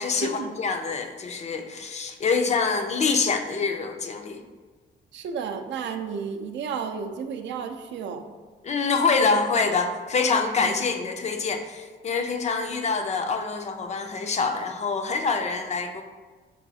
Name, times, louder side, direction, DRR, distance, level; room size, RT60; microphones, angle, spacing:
voice 1, 0.0-4.4 8.6-16.0, left 4 dB, 35° left, 6 dB, 0.4 m, -25 dB
voice 2, 5.1-8.2 10.6-10.7, right 6 dB, 65° right, 5 dB, 0.4 m, -32 dB
5.5 x 2.4 x 2.7 m, 1.4 s
cardioid pair, 90°, 20 cm